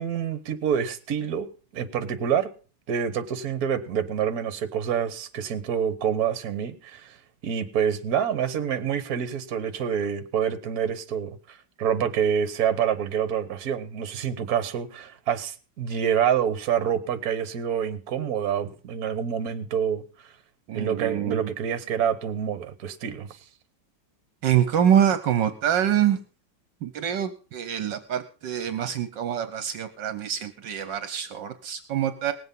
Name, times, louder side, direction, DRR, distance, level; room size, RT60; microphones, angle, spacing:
voice 1, 0.0-1.5 1.7-2.5 2.9-7.2 7.4-20.0 20.7-23.3, right 8 dB, 55° right, 12 dB, 1.5 m, -27 dB
voice 2, 20.7-21.5 24.4-26.2 26.8-32.3, right 9 dB, 70° right, 11 dB, 1.5 m, -25 dB
19.0 x 7.9 x 5.4 m, 0.36 s
omnidirectional pair, 2.1 m